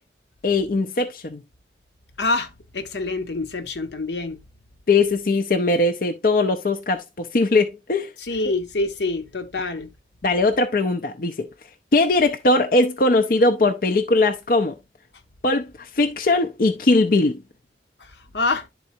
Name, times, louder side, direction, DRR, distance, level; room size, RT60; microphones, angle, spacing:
voice 1, 0.4-1.4 4.9-8.1 10.2-11.5 11.9-14.7 15.4-17.4, left 2 dB, 50° left, 0.5 m, -20 dB
voice 2, 2.2-4.5 8.3-9.9 18.3-18.7, left 3 dB, 80° left, 0.9 m, -26 dB
11.5 x 4.0 x 2.7 m
head